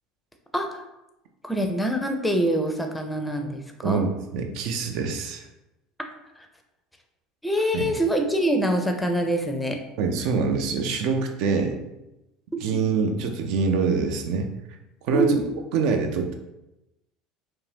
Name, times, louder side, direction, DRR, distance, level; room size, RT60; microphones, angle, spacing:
voice 1, 1.4-4.1 6.4-6.5 7.4-9.8 12.7-12.8 15.1-15.4, right 1 dB, 5° left, 4 dB, 0.5 m, -25 dB
voice 2, 3.8-5.5 7.7-7.9 10.0-11.8 12.6-14.5 15.0-15.4 15.7-16.3, right 4 dB, 65° right, 4 dB, 0.4 m, -25 dB
2.6 x 2.1 x 3.2 m, 0.94 s
hypercardioid pair, 75°, 0 cm